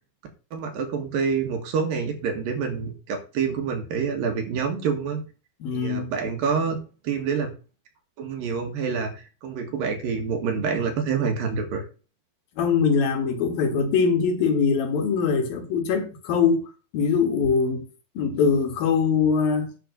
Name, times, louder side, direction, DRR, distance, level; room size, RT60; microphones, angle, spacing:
voice 1, 0.5-5.2 5.7-6.8 7.0-7.5 8.2-11.8, right 6 dB, 70° right, 3.5 m, -27 dB
voice 2, 5.6-6.1 12.6-16.6 16.9-17.8 18.2-19.7, left 5 dB, 75° left, 3.5 m, -22 dB
10.5 x 4.5 x 6.9 m
omnidirectional pair, 4.2 m